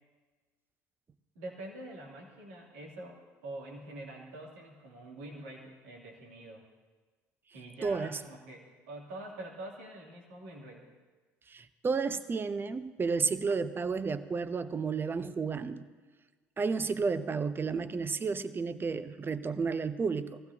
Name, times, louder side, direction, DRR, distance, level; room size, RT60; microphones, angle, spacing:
voice 1, 1.3-6.6 7.5-10.8, right 1 dB, 80° right, -1 dB, 2.6 m, -45 dB
voice 2, 7.8-8.2 11.5-15.9 16.6-20.4, right 4 dB, 30° right, 13 dB, 0.7 m, -32 dB
20.0 x 15.5 x 2.8 m, 1.3 s
hypercardioid pair, 65°, 8 cm